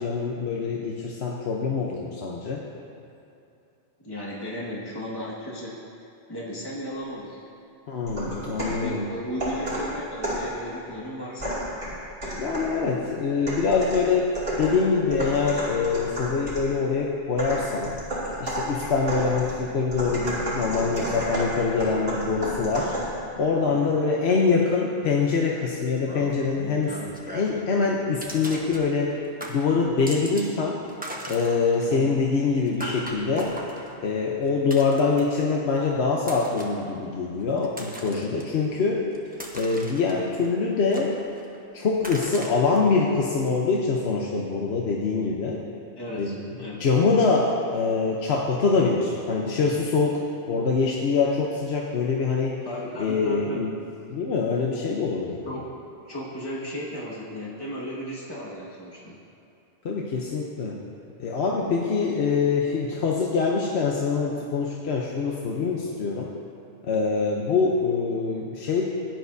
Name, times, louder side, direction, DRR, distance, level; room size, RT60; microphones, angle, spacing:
voice 1, 0.0-2.6 7.9-9.1 12.4-14.3 14.6-18.0 18.4-22.9 23.4-29.1 29.5-30.8 31.3-33.5 33.8-39.0 39.5-41.1 41.7-45.6 46.2-46.4 46.8-50.2 50.5-52.5 53.0-53.7 54.1-55.4 59.8-60.8 61.2-66.3 66.8-68.8, left 4 dB, 65° left, -2 dB, 1.1 m, -24 dB
voice 2, 4.0-5.8 6.3-7.4 8.7-11.6 23.7-24.0 46.0-46.8 52.6-53.7 55.4-55.7 56.0-59.2, equal, 20° left, -6 dB, 1.7 m, -35 dB
sound 1, 8.1-8.9 9.4-10.5 11.4-12.8 13.5-16.7 17.4-23.2, right 1 dB, 45° right, 2.9 m, -31 dB
sound 2, 26.0-27.7 28.2-29.1 29.4-30.6 30.8-35.4 36.2-36.8 37.4-38.4 38.9-40.5 40.9-41.6 42.0-42.8, right 1 dB, 10° right, 1.0 m, -39 dB
16.5 x 10.5 x 2.7 m, 2.7 s
omnidirectional pair, 1.2 m